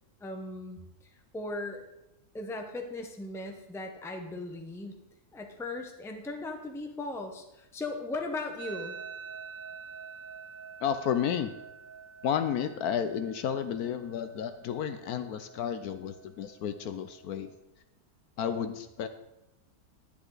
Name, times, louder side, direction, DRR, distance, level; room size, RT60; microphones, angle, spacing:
voice 1, 0.2-1.8 2.3-5.0 5.3-9.0, left 2 dB, ahead, 4 dB, 0.7 m, -38 dB
sound 1, 8.6-17.6, right 6 dB, 90° right, 1.6 m, -47 dB
voice 2, 10.8-11.5 12.2-17.5 18.4-19.1, left 8 dB, 70° left, 10 dB, 1.1 m, -32 dB
10.5 x 10.0 x 3.9 m, 0.92 s
omnidirectional pair, 1.8 m